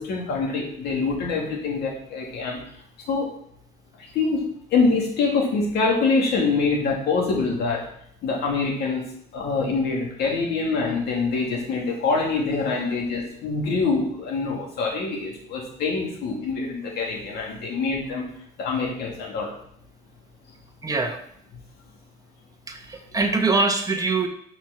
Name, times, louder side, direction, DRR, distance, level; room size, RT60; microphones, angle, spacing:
voice 1, 0.0-2.6 3.1-3.3 4.1-7.8 8.2-9.0 9.3-18.2 18.6-19.5, left 4 dB, 75° left, -1 dB, 2.4 m, -25 dB
voice 2, 20.8-21.2 22.7-24.3, right 3 dB, 20° right, 4 dB, 1.1 m, -23 dB
6.0 x 4.5 x 5.9 m, 0.67 s
cardioid pair, 110°, 17 cm